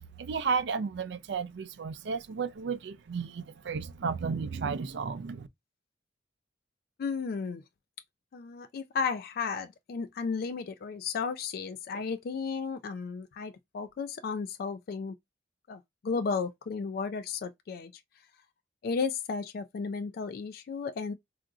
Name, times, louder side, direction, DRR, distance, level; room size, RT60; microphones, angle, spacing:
voice 1, 0.0-5.5, right 5 dB, 70° right, 0.4 m, -33 dB
voice 2, 7.0-7.6 8.3-15.2 15.7-17.9 18.8-21.1, left 5 dB, 55° left, 0.3 m, -34 dB
3.7 x 2.5 x 2.3 m
head